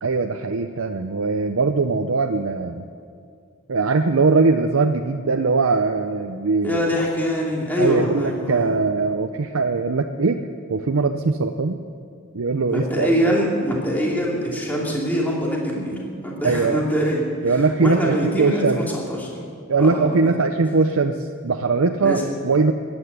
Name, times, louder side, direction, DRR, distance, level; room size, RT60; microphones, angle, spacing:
voice 1, 0.0-2.9 3.7-6.8 7.8-10.4 10.7-11.8 12.3-13.1 16.4-16.8 17.4-18.8 19.7-22.7, right 4 dB, 75° right, 5 dB, 0.7 m, -21 dB
voice 2, 6.6-8.7 12.7-19.3 19.8-20.4 22.0-22.2, equal, 10° left, -4 dB, 2.6 m, -24 dB
15.0 x 9.8 x 9.7 m, 2.3 s
head